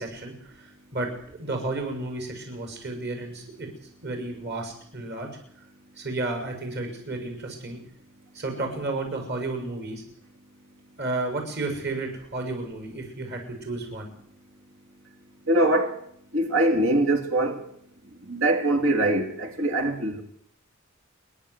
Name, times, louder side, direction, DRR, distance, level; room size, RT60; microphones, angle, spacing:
voice 1, 0.0-3.7 4.0-5.3 6.0-7.8 8.3-10.0 11.0-14.1, right 2 dB, 55° right, 7.1 m, -32 dB
voice 2, 15.5-16.0 16.3-17.6 18.3-20.2, right 1 dB, 75° right, 3.5 m, -23 dB
28.5 x 11.5 x 8.3 m
head